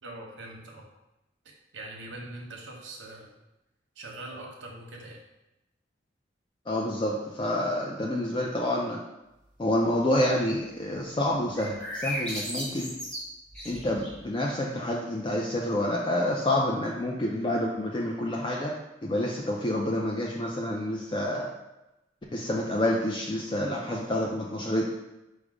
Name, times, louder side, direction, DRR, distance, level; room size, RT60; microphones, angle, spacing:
voice 1, 0.0-0.9 1.7-3.3 4.0-5.2, right 2 dB, 80° right, 0 dB, 0.9 m, -42 dB
voice 2, 6.7-9.0 9.6-12.9 13.6-18.7 19.0-21.5 22.3-24.8, left 1 dB, 25° left, -2 dB, 0.3 m, -28 dB
sound 1, 11.5-14.3, equal, 5° left, 0.9 m, -35 dB
5.0 x 2.1 x 4.7 m, 0.95 s
head